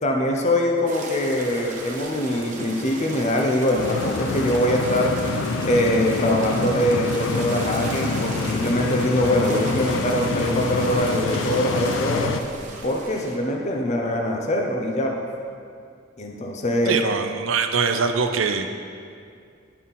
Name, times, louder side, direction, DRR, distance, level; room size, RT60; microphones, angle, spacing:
voice 1, 0.0-5.1 5.6-12.3 12.8-15.3 16.2-17.0, left 1 dB, 35° left, 1 dB, 0.7 m, -23 dB
sound 1, 0.9-13.4, right 2 dB, 40° right, 1.0 m, -35 dB
sound 2, 3.8-12.4, left 4 dB, 75° left, 0.4 m, -27 dB
voice 2, 16.9-18.8, right 5 dB, 80° right, 7 dB, 0.6 m, -23 dB
10.5 x 4.3 x 5.5 m, 2.3 s
head